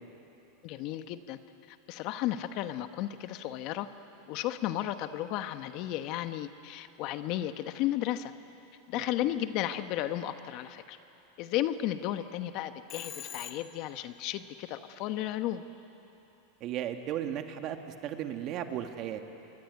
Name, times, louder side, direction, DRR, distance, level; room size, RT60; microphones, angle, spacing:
voice 1, 0.6-1.4 1.7-3.9 4.3-8.3 8.9-11.0 11.4-15.6, left 13 dB, 50° left, 10 dB, 1.2 m, -34 dB
Telephone, 12.9-14.0, left 8 dB, 30° left, 2.0 m, -43 dB
voice 2, 16.6-17.8 18.0-19.2, right 11 dB, 45° right, 6 dB, 2.0 m, -35 dB
26.0 x 22.5 x 9.4 m, 3.0 s
supercardioid pair, 125°, 0 cm